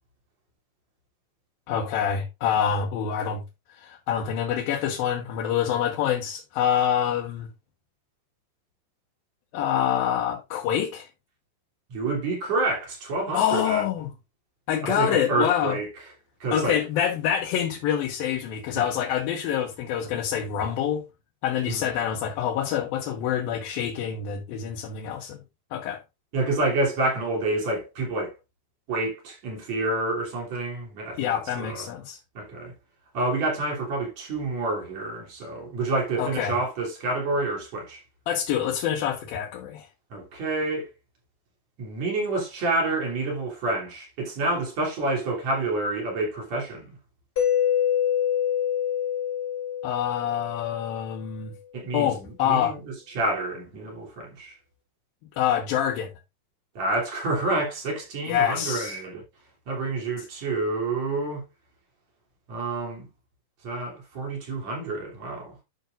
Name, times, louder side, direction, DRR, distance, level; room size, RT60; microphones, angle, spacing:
voice 1, 1.7-3.4 3.7-7.5 9.5-11.1 13.3-14.1 14.7-15.8 16.5-21.0 21.4-25.4 25.7-26.0 31.2-32.2 36.2-36.6 38.3-39.9 49.8-51.5 51.9-52.7 55.4-56.1 58.3-59.0, left 9 dB, 85° left, 2.9 m, -26 dB
voice 2, 11.9-13.8 14.9-15.9 16.4-16.7 18.7-18.8 21.7-22.0 26.3-28.3 28.9-31.9 32.4-32.7 33.1-38.0 40.1-40.9 41.8-47.0 51.7-54.5 56.8-59.2 59.7-61.4 62.5-63.1 63.6-65.6, right 2 dB, 50° right, 4.1 m, -28 dB
Mallet percussion, 47.4-51.1, left 9 dB, 40° left, 0.8 m, -26 dB
12.0 x 6.2 x 2.5 m
omnidirectional pair, 4.1 m